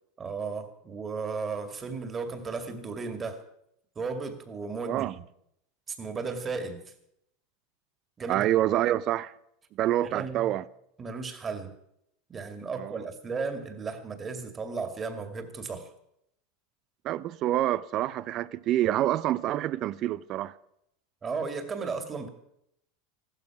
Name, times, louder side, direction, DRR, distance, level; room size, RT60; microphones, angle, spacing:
voice 1, 0.2-3.4 4.0-5.2 5.9-6.8 8.2-8.5 10.0-10.5 11.0-11.7 12.3-15.9 21.2-22.3, right 4 dB, 25° right, 2.3 m, -35 dB
voice 2, 8.3-9.3 9.8-10.6 12.8-13.0 17.0-20.5, right 13 dB, 45° right, 0.6 m, -27 dB
14.5 x 12.5 x 6.0 m
hypercardioid pair, 110°, 0 cm